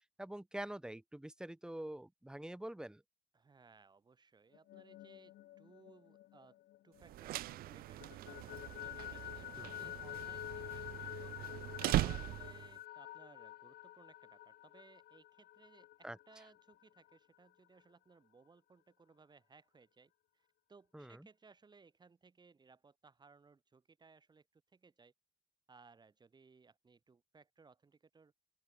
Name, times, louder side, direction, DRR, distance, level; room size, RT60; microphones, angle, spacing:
voice 1, 0.2-3.0 9.6-9.9 16.0-16.2 20.9-21.3, right 1 dB, 5° right, 0.6 m, -46 dB
voice 2, 3.3-6.6 6.8-11.3 11.8-25.1 25.7-28.3, right 4 dB, 25° right, 4.1 m, -63 dB
sound 1, 4.5-7.4 7.7-17.1, left 15 dB, 70° left, 1.9 m, -49 dB
sound 2, 7.0-12.8, right 16 dB, 60° right, 0.4 m, -40 dB
open air
cardioid pair, 110°, 17 cm